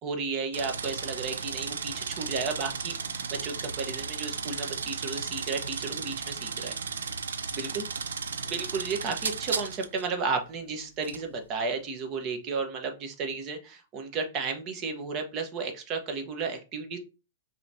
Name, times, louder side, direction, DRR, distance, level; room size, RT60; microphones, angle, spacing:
voice 1, 0.0-6.8 7.5-7.8 8.4-17.0, right 4 dB, 35° right, 5 dB, 1.2 m, -33 dB
sound 1, 0.5-10.1 11.0-11.2, right 5 dB, 75° right, 0.5 m, -35 dB
5.6 x 3.1 x 2.8 m, 0.32 s
hypercardioid pair, 110°, 0 cm